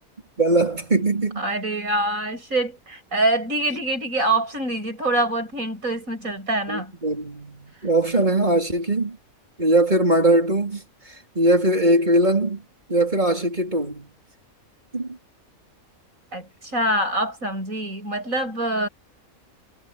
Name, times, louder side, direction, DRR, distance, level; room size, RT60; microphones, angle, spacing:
voice 1, 0.4-1.4 6.7-9.2 9.6-10.8 11.4-12.6 12.9-14.1 14.9-15.2, right 1 dB, 30° right, 4.1 m, -20 dB
voice 2, 1.4-6.9 16.3-18.9, right 1 dB, 70° right, 8.2 m, -25 dB
omnidirectional pair, 1.5 m